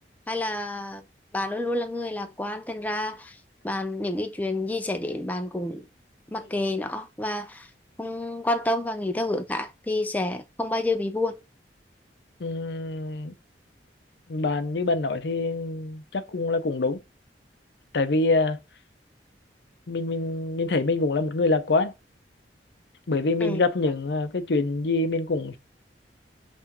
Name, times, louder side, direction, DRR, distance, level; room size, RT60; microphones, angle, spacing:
voice 1, 0.3-1.0 1.3-3.4 3.6-5.9 6.3-7.7 8.0-11.4 23.4-23.6, left 1 dB, 10° left, 0.4 m, -29 dB
voice 2, 12.4-13.3 14.3-17.0 17.9-18.6 19.9-21.9 23.1-25.6, left 3 dB, 70° left, 0.6 m, -25 dB
5.7 x 2.4 x 2.9 m
head